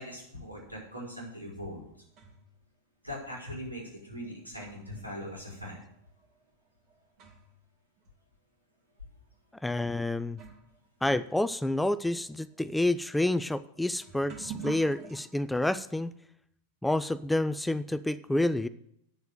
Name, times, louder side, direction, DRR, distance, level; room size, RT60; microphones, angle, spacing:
voice 1, 0.0-1.8 3.0-5.8, equal, 90° right, -3 dB, 4.3 m, -41 dB
sound 1, 1.5-2.6 3.5-3.6 4.2-7.7 8.0-8.1 8.9-9.0 9.9-10.0 10.3-15.2, right 6 dB, 40° right, 2.1 m, -48 dB
voice 2, 9.6-10.4 11.0-16.1 16.8-18.7, left 1 dB, 5° left, 14 dB, 0.4 m, -29 dB
9.4 x 6.9 x 7.7 m, 0.73 s
figure-of-eight pair, 90°, 0 cm